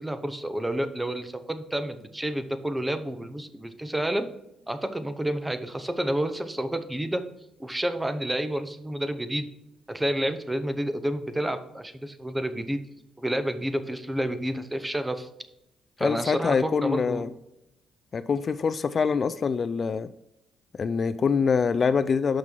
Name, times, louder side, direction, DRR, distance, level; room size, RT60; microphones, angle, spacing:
voice 1, 0.0-4.3 4.7-7.2 7.6-9.4 9.9-12.8 13.2-15.3 16.0-17.2, right 1 dB, 10° right, 9 dB, 0.7 m, -29 dB
voice 2, 16.0-17.3 18.1-20.1 20.8-22.4, left 5 dB, 45° left, 14 dB, 0.3 m, -25 dB
6.1 x 5.9 x 4.5 m, 0.86 s
cardioid pair, 90°, 0 cm